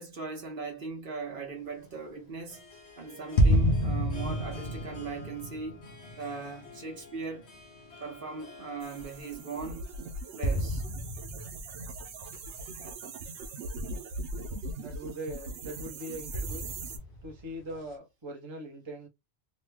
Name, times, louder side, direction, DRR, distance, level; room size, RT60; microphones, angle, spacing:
voice 1, 0.0-2.6 3.0-5.8 6.2-7.5 8.0-9.9 10.3-10.8, right 4 dB, 55° right, 1.2 m, -39 dB
Harp, 1.1-11.5, left 3 dB, 80° left, 1.4 m, -51 dB
sound 1, 3.4-8.1 8.7-8.8 10.4-12.7 13.4-13.5 16.3-17.8, equal, 60° left, 0.9 m, -30 dB
sound 2, 8.8-17.0, right 2 dB, 85° right, 1.0 m, -40 dB
voice 2, 14.8-16.7 17.2-19.1, right 1 dB, 30° right, 0.8 m, -41 dB
3.1 x 2.2 x 3.2 m
omnidirectional pair, 1.1 m